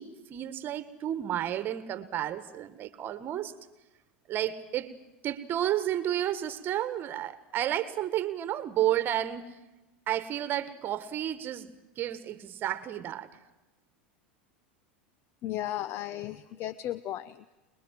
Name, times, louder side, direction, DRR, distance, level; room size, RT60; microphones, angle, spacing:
voice 1, 0.0-3.5 4.3-4.9 5.2-9.6 10.1-13.3, right 12 dB, 40° right, 13 dB, 1.6 m, -31 dB
voice 2, 15.4-17.5, left 13 dB, 50° left, 16 dB, 0.9 m, -35 dB
27.5 x 21.0 x 7.7 m, 1.0 s
hypercardioid pair, 95°, 5 cm